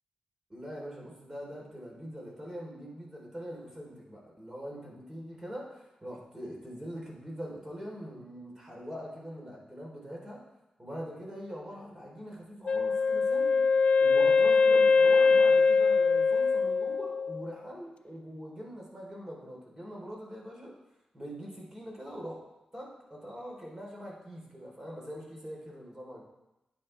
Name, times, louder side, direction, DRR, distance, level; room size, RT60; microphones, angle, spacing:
voice 1, 0.5-10.4 10.8-13.6 14.0-20.8 21.1-22.4 22.7-26.2, equal, 20° right, -3 dB, 3.9 m, -43 dB
Wind instrument woodwind instrument, 12.7-17.5, left 4 dB, 60° left, 0.5 m, -23 dB
10.5 x 8.8 x 3.4 m, 0.96 s
cardioid pair, 60°, 2 cm